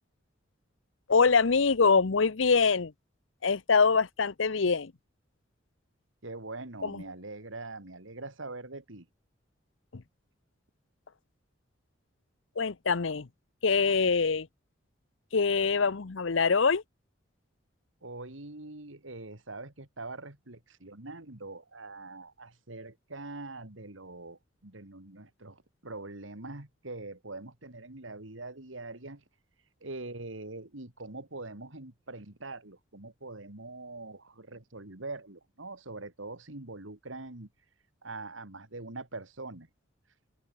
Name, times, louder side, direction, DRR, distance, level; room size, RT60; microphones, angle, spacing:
voice 1, 1.1-2.9 3.4-4.9 6.8-7.0 9.9-10.0 12.6-13.3 13.6-14.5 15.3-16.8, left 5 dB, 75° left, 0.8 m, -24 dB
voice 2, 6.2-9.1 18.0-29.2 29.8-37.5 38.0-39.7, right 2 dB, 80° right, 2.7 m, -43 dB
head